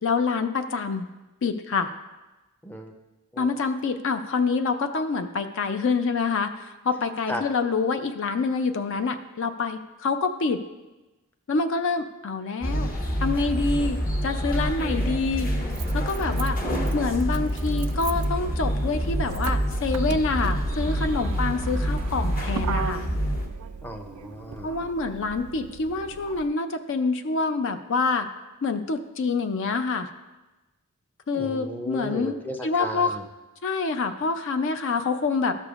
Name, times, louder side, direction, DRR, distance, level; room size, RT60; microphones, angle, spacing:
voice 1, 0.0-1.1 1.4-1.9 3.4-10.6 11.5-12.9 13.2-15.5 15.9-16.6 16.9-23.1 24.6-28.3 28.6-30.1 31.3-32.4 32.6-33.2 33.6-35.6, left 4 dB, 55° left, 8 dB, 0.4 m, -26 dB
voice 2, 2.6-2.9 3.3-3.5 7.3-7.4 12.7-13.3 19.4-19.5 23.8-24.7 31.4-33.2, equal, 10° left, 3 dB, 0.5 m, -35 dB
sound 1, 12.6-23.5, equal, 40° left, 1.1 m, -27 dB
Motor vehicle (road), 14.1-14.2 15.3-26.5, right 5 dB, 80° right, 0.4 m, -37 dB
13.5 x 6.7 x 2.4 m, 1.1 s
head